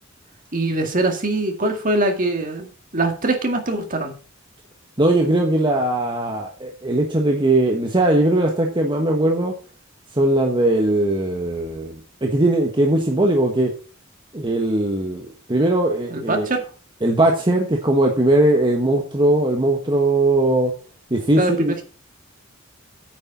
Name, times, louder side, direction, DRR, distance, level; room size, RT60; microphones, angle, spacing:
voice 1, 0.5-4.1 16.1-16.7 21.4-21.8, right 2 dB, 45° right, 4 dB, 2.1 m, -23 dB
voice 2, 5.0-9.5 10.1-13.7 14.3-16.5 17.0-20.7 21.1-21.7, right 1 dB, 25° right, 1 dB, 1.3 m, -19 dB
9.0 x 6.6 x 5.4 m, 0.36 s
head